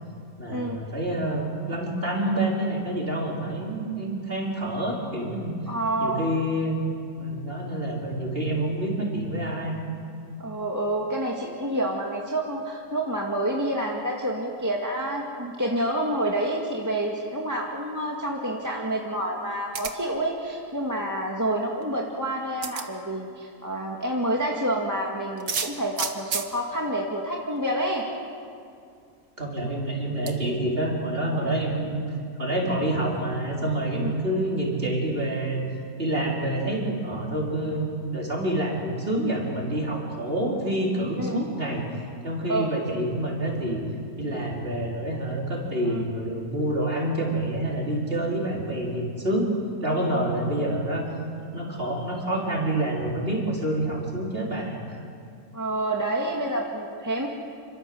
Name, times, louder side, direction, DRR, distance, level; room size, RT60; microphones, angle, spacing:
voice 1, 0.4-5.6 6.0-6.8 7.2-9.8 29.4-32.1 32.4-35.6 36.0-43.8 44.2-49.5 49.8-51.1 51.5-55.0, right 1 dB, 35° right, -2 dB, 4.8 m, -27 dB
voice 2, 5.7-6.3 10.4-28.0 31.4-31.6 33.9-34.1 41.2-41.4 42.5-42.7 45.8-46.0 50.1-50.3 55.5-57.3, right 1 dB, 10° right, -1 dB, 2.1 m, -28 dB
sound 1, 19.7-20.2 21.8-21.9 22.6-22.9 25.4-26.5 27.6-27.7 28.0-28.1 30.3-30.4, right 5 dB, 60° right, 1.9 m, -30 dB
28.0 x 26.0 x 7.9 m, 2.3 s
omnidirectional pair, 1.7 m